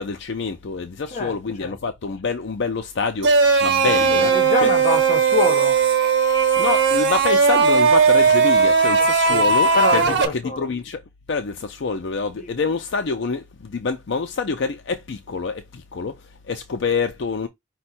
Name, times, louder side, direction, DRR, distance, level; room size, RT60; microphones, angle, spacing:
voice 1, 0.0-4.3 4.6-4.7 6.6-10.0 10.3-11.0 11.3-17.5, left 4 dB, 60° left, 0.5 m, -26 dB
voice 2, 1.1-1.8 4.0-5.8 9.0-10.7 12.3-12.6, left 3 dB, 40° left, 1.1 m, -26 dB
sound 1, 3.2-10.3, right 5 dB, 60° right, 1.0 m, -17 dB
5.3 x 2.2 x 4.2 m
head